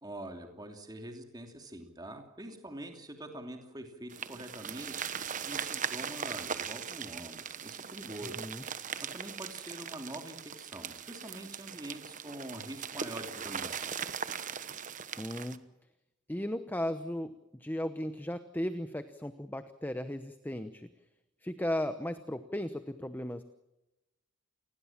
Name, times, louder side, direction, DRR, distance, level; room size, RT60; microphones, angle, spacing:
voice 1, 0.0-5.0 5.5-8.4 9.0-13.9, right 1 dB, 20° right, 4 dB, 3.0 m, -45 dB
sound 1, 4.1-15.6, right 7 dB, 35° right, 1.1 m, -39 dB
voice 2, 15.2-15.6 16.3-20.9 21.4-23.4, left 1 dB, 10° left, 10 dB, 0.9 m, -36 dB
29.0 x 20.0 x 7.4 m, 0.98 s
head